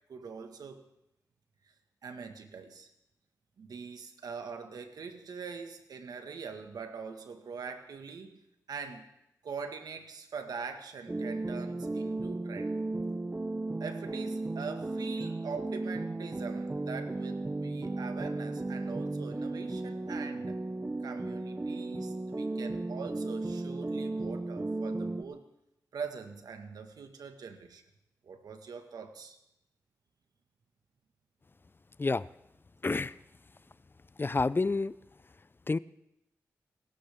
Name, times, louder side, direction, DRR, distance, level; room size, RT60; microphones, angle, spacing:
voice 1, 0.1-0.8 2.0-2.9 3.6-8.4 8.7-9.1 9.4-12.8 13.8-20.6 21.0-25.5 25.9-27.8 28.2-29.4, right 5 dB, 85° right, 6 dB, 1.7 m, -43 dB
sound 1, 11.1-25.2, right 2 dB, 25° right, 0.8 m, -35 dB
voice 2, 32.8-33.2 34.2-34.9 35.7-35.8, left 3 dB, 35° left, 18 dB, 0.5 m, -28 dB
29.5 x 12.5 x 3.6 m, 0.84 s
cardioid pair, 55°, 6 cm